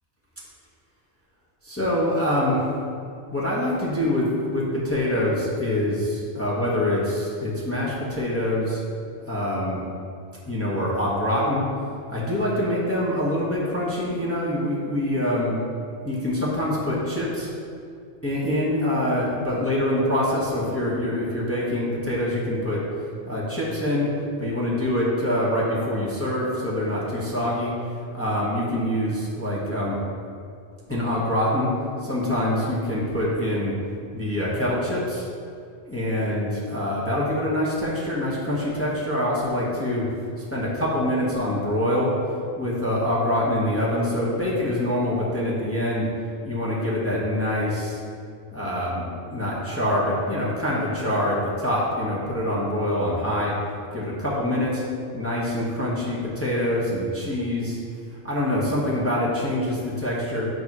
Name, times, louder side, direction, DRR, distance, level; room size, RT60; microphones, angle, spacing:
voice 1, 1.6-2.7 3.3-8.8 9.3-9.8 10.5-11.7 12.1-15.6 16.0-17.5 18.2-22.8 23.3-24.1 24.4-27.7 28.1-30.0 30.9-31.7 32.0-33.7 34.1-35.3 35.8-40.1 40.5-42.2 42.6-46.1 46.4-48.0 48.5-49.0 49.3-53.5 53.9-54.8 55.1-57.8 58.2-60.5, left 1 dB, 15° left, -7 dB, 1.1 m, -25 dB
8.3 x 3.0 x 5.9 m, 2.4 s
omnidirectional pair, 1.2 m